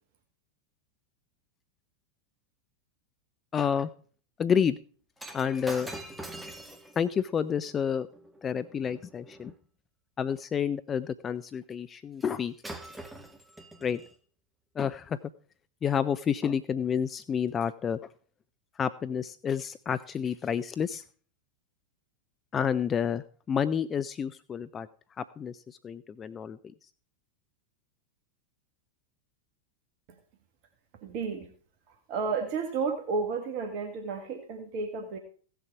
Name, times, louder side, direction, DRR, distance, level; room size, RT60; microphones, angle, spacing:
voice 1, 3.5-3.9 4.4-4.8 5.3-5.9 7.0-8.1 8.4-9.5 10.2-12.5 13.8-14.0 14.8-15.2 15.8-18.0 18.8-21.0 22.5-24.9 25.2-26.6, left 7 dB, 25° left, 14 dB, 0.5 m, -29 dB
Shatter, 5.2-9.6 12.2-12.4 12.6-14.1 14.9-15.0, right 1 dB, 5° right, 1.5 m, -44 dB
voice 2, 31.0-31.5 31.9-35.2, right 4 dB, 45° right, 5 dB, 1.7 m, -32 dB
16.5 x 6.9 x 4.7 m, 0.42 s
figure-of-eight pair, 90°, 0 cm